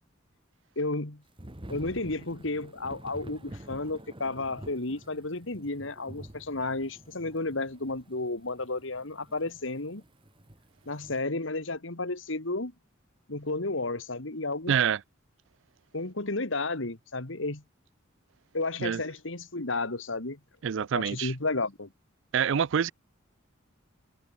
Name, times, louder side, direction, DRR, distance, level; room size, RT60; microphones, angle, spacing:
voice 1, 0.8-1.2 1.7-10.0 10.9-12.7 13.3-14.7 15.9-17.6 18.5-20.4 20.9-21.9, left 2 dB, 70° left, 2.3 m, -32 dB
Thunder / Rain, 1.4-11.2, right 1 dB, 25° right, 2.5 m, -48 dB
voice 2, 14.7-15.0 18.8-19.0 20.6-21.3 22.3-22.9, right 8 dB, 65° right, 0.4 m, -26 dB
head